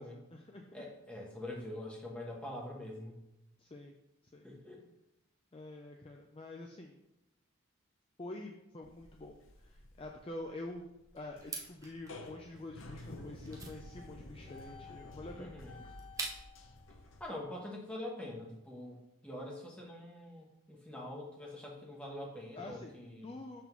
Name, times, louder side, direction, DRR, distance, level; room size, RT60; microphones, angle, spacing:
voice 1, 0.0-0.8 3.6-3.9 4.3-4.5 5.5-7.0 8.2-10.9 11.1-15.5 22.6-22.9 23.2-23.6, left 2 dB, 25° left, 2 dB, 0.4 m, -47 dB
voice 2, 0.7-3.2 4.4-4.9 15.4-15.8 17.2-23.3, left 1 dB, 5° left, -2 dB, 1.2 m, -44 dB
sound 1, 8.8-17.2, left 2 dB, 70° left, 0.8 m, -51 dB
sound 2, 11.4-16.7, right 3 dB, 15° right, 0.8 m, -46 dB
5.9 x 3.7 x 6.0 m, 0.88 s
head